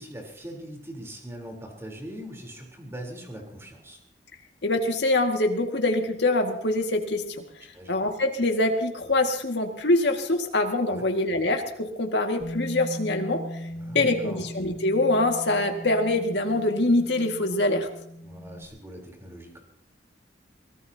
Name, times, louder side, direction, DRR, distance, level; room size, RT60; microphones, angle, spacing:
voice 1, 0.0-4.0 7.6-8.0 10.9-11.0 13.7-14.4 18.2-19.6, right 1 dB, 15° right, 0 dB, 3.9 m, -41 dB
voice 2, 4.6-7.2 7.9-13.4 13.9-17.9, left 2 dB, 70° left, 3 dB, 2.1 m, -24 dB
Bass guitar, 12.4-18.7, equal, 35° left, 2.4 m, -39 dB
24.0 x 18.5 x 2.9 m, 0.74 s
head